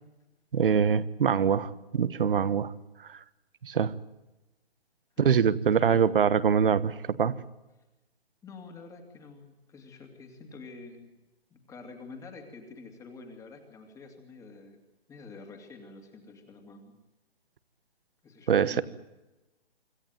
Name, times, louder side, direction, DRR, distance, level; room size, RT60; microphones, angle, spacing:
voice 1, 0.5-2.7 3.1-3.2 3.6-3.9 5.2-7.4 18.5-18.8, right 7 dB, 60° right, 16 dB, 1.3 m, -24 dB
voice 2, 8.4-11.2 11.5-14.8 15.1-16.9 18.2-18.8, left 4 dB, 10° left, 4 dB, 2.6 m, -47 dB
26.0 x 14.0 x 9.3 m, 1.0 s
figure-of-eight pair, 140°, 31 cm